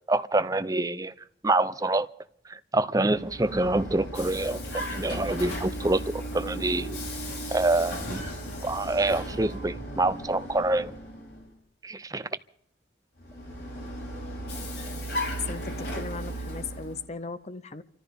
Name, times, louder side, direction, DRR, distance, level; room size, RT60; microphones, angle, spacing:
voice 1, 0.1-2.1 2.4-7.0 7.5-8.3 8.6-10.9 11.8-12.2, right 2 dB, 20° right, 0.6 m, -26 dB
Vehicle, 3.0-11.5 13.2-17.1, equal, 65° left, 5.4 m, -36 dB
voice 2, 15.3-17.8, left 5 dB, 35° left, 0.6 m, -37 dB
28.5 x 14.0 x 3.6 m
head